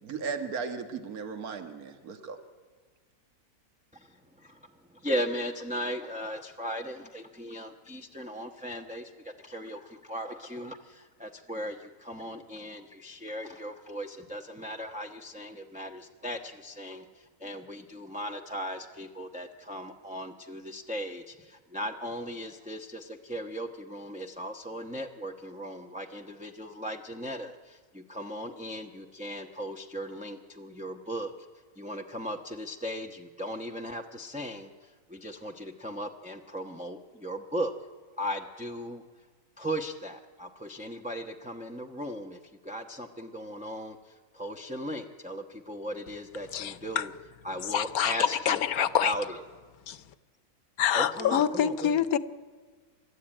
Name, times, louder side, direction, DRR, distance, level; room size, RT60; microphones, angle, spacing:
voice 1, 0.0-2.4, right 5 dB, 70° right, 1.9 m, -36 dB
voice 2, 3.9-31.3 31.8-37.7 38.2-39.0 39.6-47.1 47.4-49.4 50.9-52.0, equal, 5° right, 0.8 m, -37 dB
voice 3, 46.5-47.1 47.7-49.1 49.9-50.0 50.8-52.2, left 9 dB, 70° left, 1.3 m, -26 dB
29.0 x 13.5 x 9.0 m
omnidirectional pair, 1.6 m